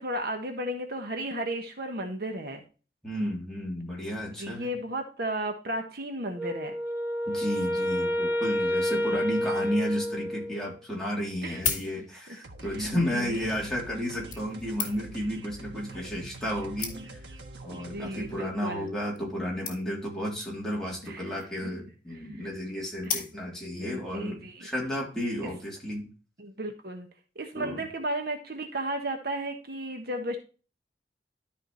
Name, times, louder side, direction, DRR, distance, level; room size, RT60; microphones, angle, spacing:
voice 1, 0.0-2.6 4.4-6.7 9.1-9.2 11.4-11.6 12.3-12.4 12.7-13.3 17.0-17.1 17.7-18.9 21.0-21.7 22.4-22.5 23.0-23.2 23.8-24.7 26.4-27.1 27.3-30.4, right 1 dB, 60° right, 4 dB, 1.4 m, -34 dB
voice 2, 3.0-4.8 7.3-17.2 17.6-26.1 27.6-27.8, equal, 5° left, -4 dB, 3.2 m, -33 dB
Wind instrument woodwind instrument, 6.4-10.7, left 1 dB, 10° right, 1.2 m, -29 dB
sound 1, 11.3-12.4 13.3-13.5 14.3-15.3 16.1-16.2 16.5-16.6 16.8-17.3 18.0-18.3 18.6-18.7 18.9-19.0 19.2-19.3 19.7-20.1 21.1-21.6 23.0-23.7 24.3-24.4, left 7 dB, 50° left, 1.8 m, -35 dB
sound 2, 12.4-18.5, right 2 dB, 80° right, 1.4 m, -45 dB
12.5 x 5.0 x 3.1 m, 0.35 s
head